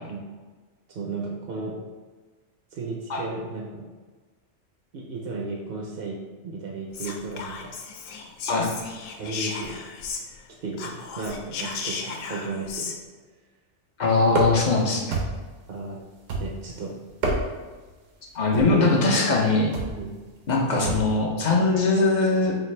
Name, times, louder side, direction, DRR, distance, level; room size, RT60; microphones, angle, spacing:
voice 1, 0.9-1.8 2.7-3.8 4.9-7.7 9.2-9.8 10.6-12.9 15.7-16.0 16.4-16.9 18.8-19.5 19.9-20.1, right 3 dB, 60° right, -1 dB, 0.7 m, -34 dB
Whispering, 6.9-10.5 10.7-13.0, left 5 dB, 85° left, 0.9 m, -35 dB
voice 2, 14.0-15.2 18.3-19.7 20.5-22.5, left 3 dB, 50° left, -1 dB, 0.6 m, -21 dB
sound 1, 14.3-14.8 15.1-15.6 16.3-16.7 17.1-17.7 18.5-18.9 19.7-20.0 20.8-21.2, right 2 dB, 80° right, 1.1 m, -28 dB
5.1 x 2.4 x 3.1 m, 1.3 s
omnidirectional pair, 1.3 m